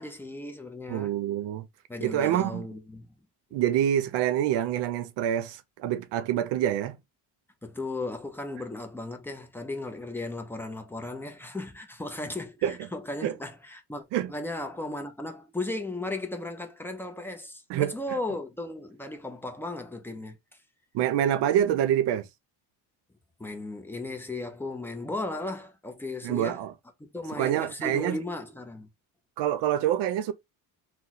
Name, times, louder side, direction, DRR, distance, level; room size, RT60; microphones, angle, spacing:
voice 1, 0.0-1.1 1.9-3.1 7.6-20.4 23.4-26.6 27.0-28.9, left 2 dB, 5° left, 0.3 m, -36 dB
voice 2, 0.9-1.7 2.0-2.7 3.5-7.0 12.6-12.7 13.2-13.3 14.1-14.3 17.7-17.9 20.9-22.3 26.2-26.7 27.4-28.2 29.4-30.3, right 11 dB, 80° right, 0.6 m, -26 dB
2.8 x 2.0 x 3.9 m
cardioid pair, 155°, 41 cm